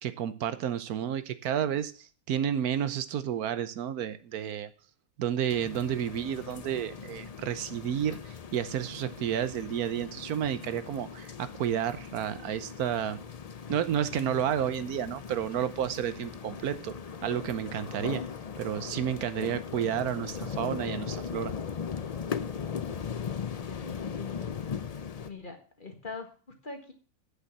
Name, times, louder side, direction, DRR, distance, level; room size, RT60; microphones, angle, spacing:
voice 1, 0.0-4.7 5.2-13.2 13.7-16.9 17.2-18.2 18.6-21.5, right 9 dB, 85° right, 13 dB, 1.3 m, -31 dB
sound 1, 5.5-25.3, left 6 dB, 75° left, 0.3 m, -39 dB
voice 2, 23.0-24.6 25.2-26.9, left 4 dB, 35° left, 5 dB, 1.7 m, -44 dB
8.2 x 6.4 x 7.1 m, 0.38 s
omnidirectional pair, 1.6 m